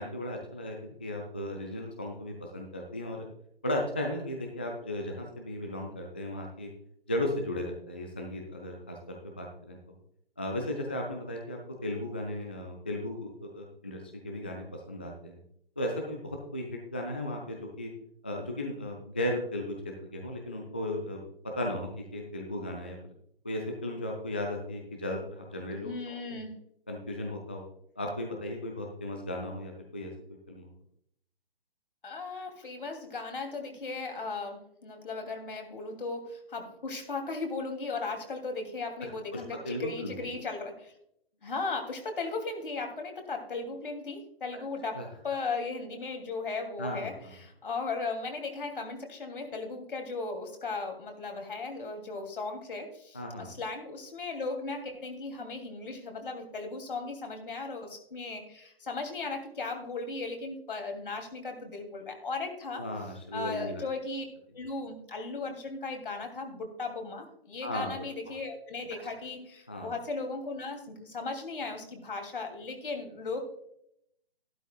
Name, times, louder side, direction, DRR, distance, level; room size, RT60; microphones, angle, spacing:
voice 1, 0.0-3.3 3.6-6.7 7.1-9.8 10.4-15.4 15.8-17.9 18.2-21.2 21.6-23.0 23.4-26.4 26.9-27.6 28.0-30.7 39.3-40.1 44.9-45.1 46.8-47.3 53.1-53.5 62.7-63.8 67.6-67.9 69.7-69.9, left 1 dB, 10° left, 1 dB, 0.3 m, -36 dB
voice 2, 25.7-26.5 32.0-40.9 41.4-62.8 63.3-64.2 64.5-73.4, left 3 dB, 60° left, 4 dB, 2.7 m, -37 dB
13.0 x 12.0 x 2.3 m, 0.73 s
figure-of-eight pair, 135°, 30 cm